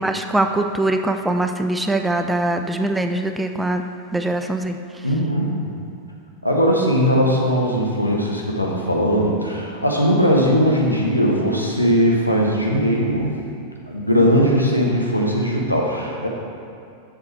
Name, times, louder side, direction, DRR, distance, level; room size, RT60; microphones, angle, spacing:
voice 1, 0.0-3.8 4.1-4.8, right 2 dB, 5° right, 6 dB, 0.4 m, -22 dB
voice 2, 5.0-5.5 6.4-13.3 13.9-16.3, equal, 85° left, -2 dB, 1.1 m, -19 dB
6.8 x 6.7 x 4.5 m, 2.4 s
figure-of-eight pair, 90°, 0 cm